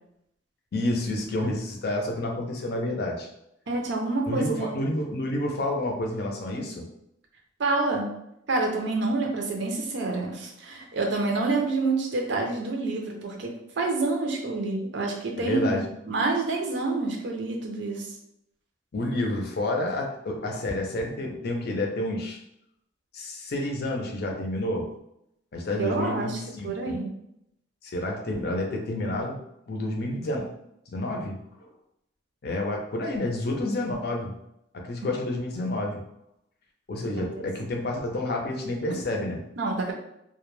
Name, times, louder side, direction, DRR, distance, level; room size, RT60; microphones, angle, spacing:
voice 1, 0.7-3.3 4.3-6.9 15.4-15.9 18.9-22.4 23.1-24.9 25.5-27.0 27.8-29.4 29.7-30.5 30.9-31.7 32.4-34.3 34.7-36.0 36.9-39.5, left 1 dB, 55° left, 1 dB, 0.5 m, -29 dB
voice 2, 3.7-4.7 7.6-8.1 8.5-15.8 16.1-18.1 25.8-27.1 39.6-39.9, right 3 dB, 65° right, 1 dB, 0.5 m, -27 dB
2.2 x 2.1 x 3.0 m, 0.79 s
head